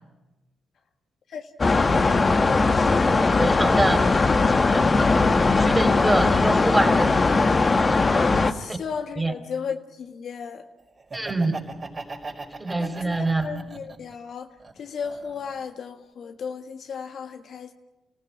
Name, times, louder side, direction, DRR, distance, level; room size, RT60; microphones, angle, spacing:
sound 1, 1.6-8.5, left 3 dB, 40° left, 1.6 m, -19 dB
voice 1, 3.1-4.0 4.5-4.8 5.5-7.1 7.6-7.9 8.7-8.8 9.2-9.3 11.1-11.6 12.6-13.6, right 2 dB, 15° right, 6 dB, 4.2 m, -26 dB
voice 2, 8.5-10.6 12.8-13.2 13.4-14.5 14.8-17.7, left 6 dB, 65° left, 6 dB, 1.6 m, -35 dB
Laughter, 11.0-14.1 14.6-15.7, right 3 dB, 45° right, 5.0 m, -38 dB
29.5 x 16.0 x 9.9 m, 1.1 s
hypercardioid pair, 45°, 0 cm